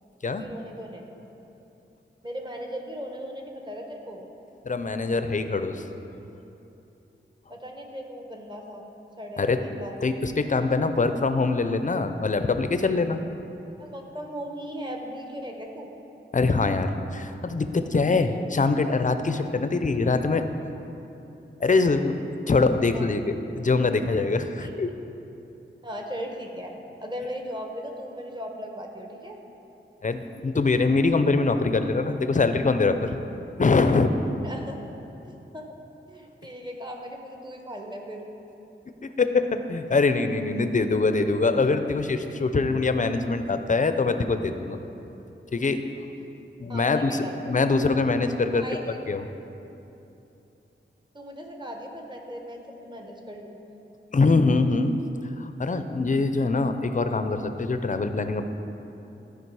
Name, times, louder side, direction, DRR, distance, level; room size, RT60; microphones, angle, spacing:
voice 1, 0.4-1.1 2.2-4.2 7.5-8.8 9.2-9.9 13.8-15.9 22.9-23.0 24.6-24.7 25.8-26.7 27.0-29.4 34.4-34.8 35.2-35.7 36.1-38.3 46.7-47.4 48.5-49.0 51.1-53.8, equal, 20° right, 2 dB, 1.1 m, -38 dB
voice 2, 4.6-5.8 9.4-9.6 10.0-13.2 16.3-20.4 21.6-24.9 30.0-33.2 33.6-34.1 39.2-44.8 45.5-45.8 46.6-48.6 49.1-49.3 54.1-55.0 55.4-58.5, left 3 dB, 40° left, 9 dB, 0.5 m, -23 dB
13.0 x 5.0 x 4.7 m, 2.9 s
wide cardioid pair, 80°, 20 cm